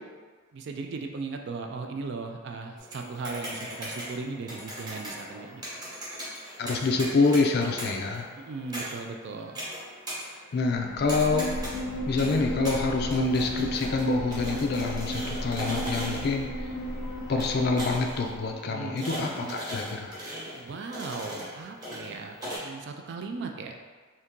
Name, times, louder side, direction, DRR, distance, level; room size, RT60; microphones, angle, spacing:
voice 1, 0.5-5.9 8.3-9.6 18.7-19.6 20.5-22.3 22.6-23.8, right 4 dB, 55° right, 3 dB, 0.3 m, -37 dB
sound 1, 2.8-22.6, equal, 20° right, 0.9 m, -39 dB
voice 2, 6.6-8.2 10.5-11.5 12.1-16.5 17.3-20.2, left 3 dB, 50° left, 2 dB, 0.3 m, -26 dB
sound 2, 10.7-18.6, equal, 90° left, 0.6 m, -34 dB
2.7 x 2.7 x 3.6 m, 1.5 s
head